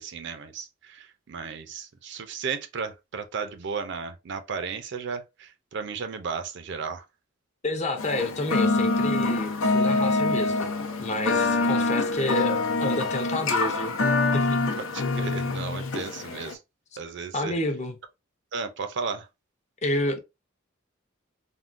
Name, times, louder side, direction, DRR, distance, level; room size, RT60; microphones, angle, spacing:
voice 1, 0.0-7.0 14.8-16.6 17.0-17.5 18.5-19.3, right 5 dB, 60° right, 0.5 m, -34 dB
voice 2, 7.6-10.7 11.0-13.9 14.3-14.6 17.3-18.0 19.8-20.2, left 2 dB, 35° left, 0.6 m, -29 dB
sound 1, 8.0-16.5, left 3 dB, 80° left, 0.6 m, -25 dB
3.5 x 2.2 x 2.5 m
head